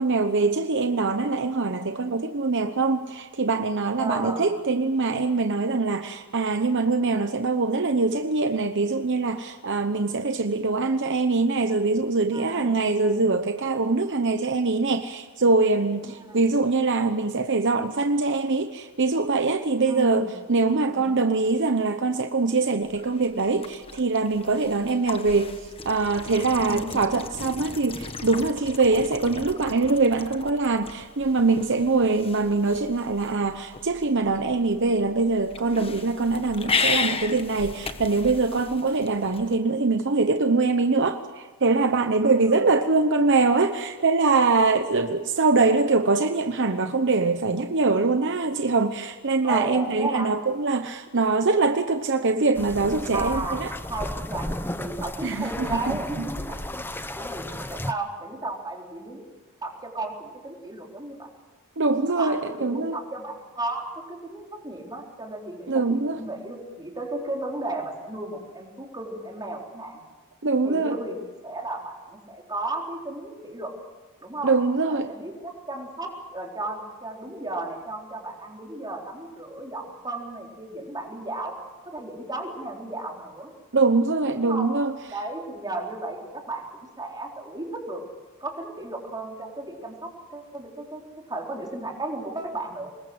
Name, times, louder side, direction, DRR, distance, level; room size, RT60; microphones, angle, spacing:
voice 1, 0.0-53.7 55.2-55.8 56.2-56.3 61.8-63.0 65.7-66.2 70.4-71.0 74.4-75.1 83.7-84.9, right 3 dB, 55° right, 8 dB, 1.0 m, -23 dB
voice 2, 4.0-4.5 12.3-13.3 16.0-16.4 19.8-20.3 20.7-21.1 26.6-27.0 42.2-42.6 49.4-50.3 53.1-53.6 53.9-54.5 54.8-59.2 59.6-61.3 62.1-70.0 70.6-71.2 71.4-73.7 74.2-74.5 74.9-81.5 81.9-83.5 84.3-84.7 85.1-86.6 87.0-88.0 88.4-91.0 91.3-92.9, right 2 dB, 20° right, 0 dB, 4.0 m, -34 dB
sound 1, 22.8-39.6, left 4 dB, 25° left, 1.3 m, -35 dB
sound 2, 52.5-57.9, left 1 dB, 10° left, 0.8 m, -34 dB
26.0 x 21.0 x 7.9 m, 1.3 s
head